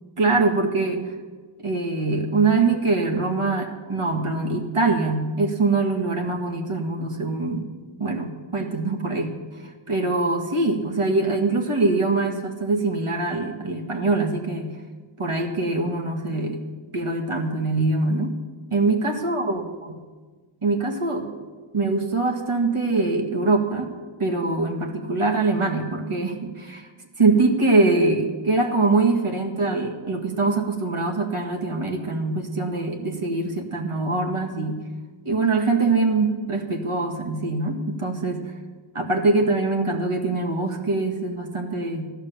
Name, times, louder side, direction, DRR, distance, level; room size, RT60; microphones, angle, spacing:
voice 1, 0.2-1.1 1.6-7.7 8.0-9.3 9.6-14.7 15.2-16.6 16.9-18.4 18.7-20.0 20.6-21.3 21.7-23.9 24.2-26.9 27.2-34.8 35.2-38.5 38.9-42.1, right 3 dB, 85° right, 3 dB, 2.0 m, -23 dB
15.0 x 11.5 x 7.0 m, 1.4 s
wide cardioid pair, 55°, 50 cm